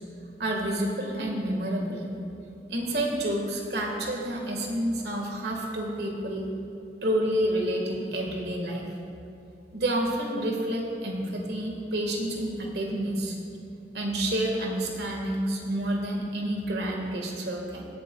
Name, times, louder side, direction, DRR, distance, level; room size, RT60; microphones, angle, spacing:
voice 1, 0.4-2.1 2.7-6.5 7.0-8.8 9.7-13.3 13.9-17.9, right 1 dB, 70° right, 0 dB, 1.6 m, -29 dB
18.5 x 8.6 x 2.3 m, 2.7 s
head